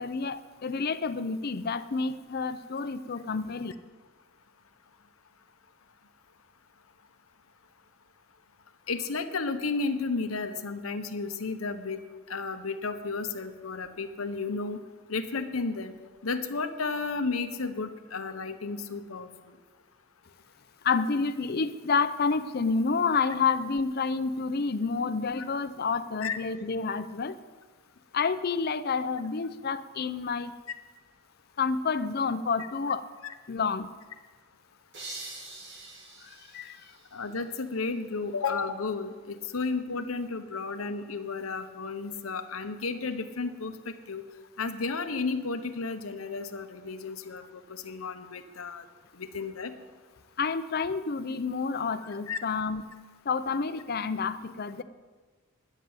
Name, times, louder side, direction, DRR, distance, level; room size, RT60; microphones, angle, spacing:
voice 1, 0.0-3.7 20.8-27.4 28.1-30.5 31.6-33.1 33.5-33.9 36.2-36.8 39.9-40.0 50.4-52.8 53.3-54.8, left 5 dB, 50° left, 12 dB, 0.6 m, -29 dB
voice 2, 8.9-12.0 12.3-14.8 15.1-15.9 16.2-19.5 25.0-25.1 26.2-26.4 37.1-44.2 44.6-48.9 49.1-49.7 52.0-52.4, left 4 dB, 90° left, 9 dB, 1.0 m, -33 dB
sound 1, 34.9-37.7, right 2 dB, 60° right, 2.4 m, -45 dB
10.0 x 7.5 x 9.4 m, 1.4 s
head